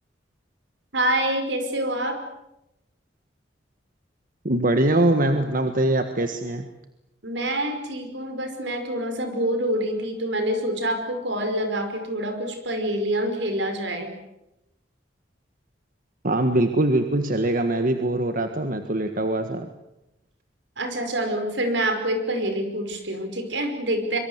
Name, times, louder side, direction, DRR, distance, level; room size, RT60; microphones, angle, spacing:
voice 1, 0.9-2.2 7.2-14.2 20.8-24.2, right 1 dB, 75° right, 7 dB, 5.4 m, -26 dB
voice 2, 4.4-6.7 16.2-19.7, right 1 dB, 50° right, 7 dB, 1.6 m, -22 dB
25.5 x 23.5 x 8.1 m, 0.89 s
head